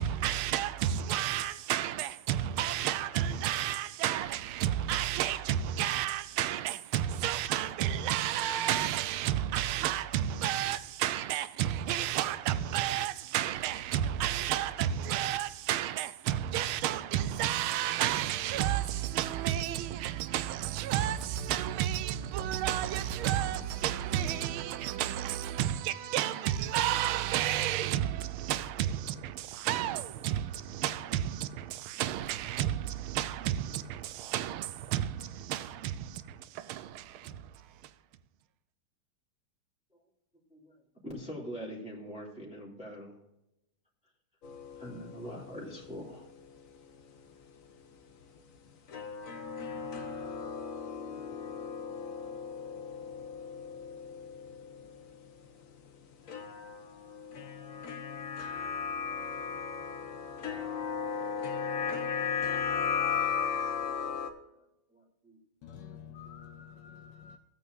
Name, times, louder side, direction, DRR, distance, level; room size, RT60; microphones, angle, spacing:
voice 1, 0.0-37.9, right 11 dB, 80° right, 1.5 m, -31 dB
voice 2, 41.0-43.2 44.8-46.3 64.9-66.0, equal, 5° right, 2.8 m, -43 dB
sound 1, 44.4-47.0 47.2-47.3 48.9-55.4 56.3-64.3, left 6 dB, 50° left, 1.1 m, -36 dB
voice 3, 65.6-67.4, left 8 dB, 70° left, 1.2 m, -48 dB
15.0 x 8.8 x 2.6 m
omnidirectional pair, 2.4 m